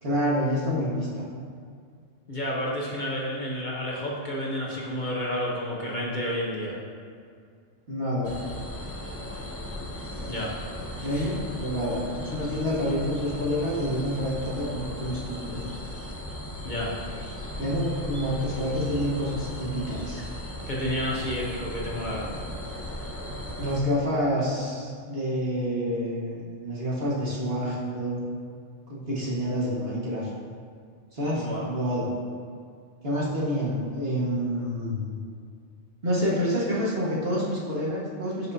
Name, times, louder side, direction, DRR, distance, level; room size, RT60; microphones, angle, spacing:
voice 1, 0.0-1.2 7.9-8.3 11.0-15.6 17.6-20.2 23.6-28.2 28.9-30.3 31.1-32.1 33.0-35.2 36.0-38.5, equal, 50° right, -7 dB, 2.0 m, -28 dB
voice 2, 2.3-6.8 10.3-10.5 11.0-11.3 16.6-16.9 20.7-22.3 31.3-31.7, equal, 40° left, -4 dB, 1.2 m, -30 dB
sound 1, 8.2-23.8, equal, 15° left, 0.6 m, -37 dB
14.5 x 5.3 x 2.8 m, 2.2 s
omnidirectional pair, 1.3 m